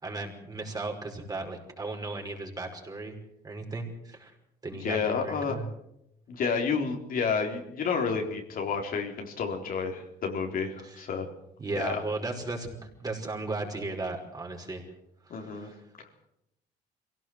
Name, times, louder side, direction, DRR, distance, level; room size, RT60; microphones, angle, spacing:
voice 1, 0.0-3.2 3.4-4.3 4.6-5.6 10.8-11.0 11.6-14.9 15.2-15.8, right 3 dB, 20° right, 1 dB, 5.4 m, -36 dB
voice 2, 4.8-5.6 6.3-11.3 11.8-12.0 15.3-15.7, left 5 dB, 55° left, 3 dB, 3.9 m, -30 dB
23.5 x 17.5 x 7.8 m, 0.80 s
cardioid pair, 110°, 17 cm